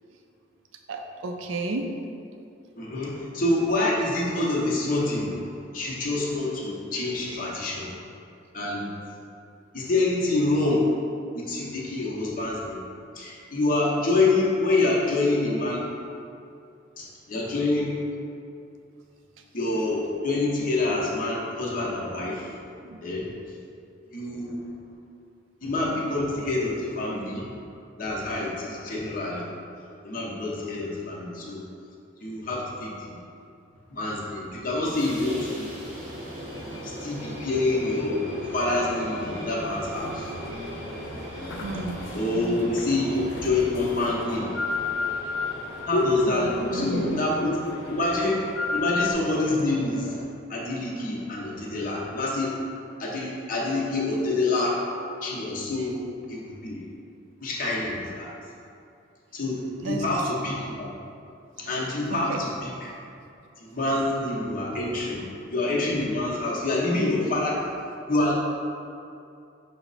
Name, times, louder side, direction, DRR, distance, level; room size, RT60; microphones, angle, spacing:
voice 1, 0.9-1.9 22.8-23.0 41.6-42.0 42.3-42.6 46.7-47.3 59.8-60.0 62.1-62.4, right 2 dB, 75° right, 4 dB, 0.4 m, -32 dB
voice 2, 2.7-5.4 5.7-7.9 8.5-8.9 9.7-10.9 11.3-12.8 13.1-15.8 17.0-18.0 19.5-22.5 23.0-23.3 24.1-24.6 25.6-27.5 28.0-29.4 30.0-31.6 32.2-33.2 33.9-35.7 36.8-38.2 38.5-40.3 42.1-44.5 45.9-47.6 47.9-48.5 48.7-50.2 50.5-52.6 53.0-54.8 55.2-56.0 56.3-56.8 57.4-58.3 59.3-60.9 61.6-62.9 63.6-67.7 68.1-68.4, left 2 dB, 45° left, -4 dB, 0.7 m, -27 dB
sound 1, 34.7-50.2, equal, 35° right, 0.8 m, -39 dB
sound 2, 39.6-49.1, left 2 dB, 75° left, 0.4 m, -31 dB
5.6 x 2.0 x 3.9 m, 2.5 s
head